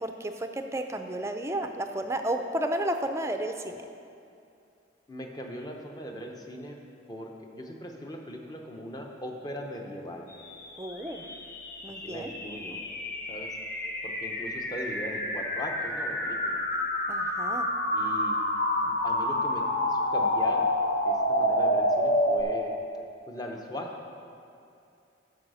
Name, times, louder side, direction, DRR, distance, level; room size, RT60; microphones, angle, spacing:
voice 1, 0.0-3.8 10.8-11.2 11.8-12.3 17.1-17.7, right 1 dB, 15° right, 6 dB, 0.4 m, -32 dB
voice 2, 5.1-6.8 7.1-10.3 12.0-12.8 13.3-13.5 14.0-16.6 17.9-18.4 18.8-20.7 21.1-22.7 23.3-23.9, equal, 20° left, 1 dB, 0.8 m, -39 dB
sound 1, 10.5-22.4, left 1 dB, 50° left, 1.1 m, -28 dB
12.0 x 4.8 x 6.3 m, 2.6 s
head